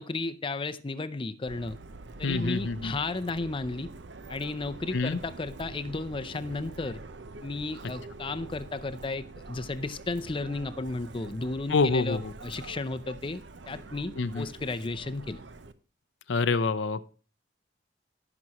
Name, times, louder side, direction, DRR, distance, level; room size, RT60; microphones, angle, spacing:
voice 1, 0.0-1.8 2.2-3.9 4.3-7.0 7.4-15.4, left 3 dB, 30° left, 12 dB, 0.5 m, -34 dB
Subway metro underground, 1.5-15.7, right 3 dB, 70° right, 0.8 m, -45 dB
voice 2, 2.2-2.9 4.9-5.2 11.7-12.3 14.2-14.5 16.3-17.1, left 4 dB, 75° left, 13 dB, 0.6 m, -26 dB
17.0 x 6.1 x 2.9 m, 0.37 s
head